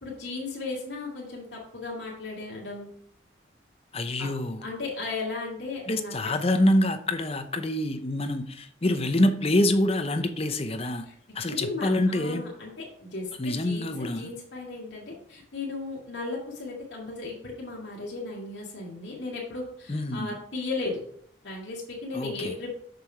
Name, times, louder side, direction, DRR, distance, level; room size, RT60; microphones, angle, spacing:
voice 1, 0.0-2.9 4.2-4.3 4.6-6.1 11.1-11.2 11.5-21.0 21.4-22.8, left 3 dB, 65° left, 2.3 m, -36 dB
voice 2, 3.9-4.6 5.9-11.1 11.3-12.5 13.4-14.3 19.9-20.4 22.1-22.5, left 1 dB, 30° left, 0.7 m, -26 dB
6.7 x 6.5 x 4.6 m
head